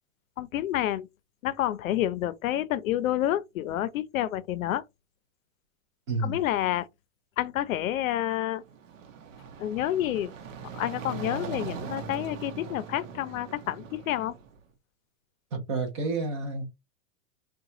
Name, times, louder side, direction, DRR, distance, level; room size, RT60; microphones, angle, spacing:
voice 1, 0.4-1.1 1.4-4.8 6.2-6.9 7.4-8.6 9.6-10.3 10.7-14.4, left 12 dB, 90° left, 0.6 m, -29 dB
voice 2, 6.1-6.4 15.5-16.7, right 3 dB, 20° right, 0.5 m, -30 dB
sound 1, 8.6-14.6, right 6 dB, 70° right, 0.8 m, -40 dB
3.9 x 2.3 x 2.6 m
supercardioid pair, 170°, 39 cm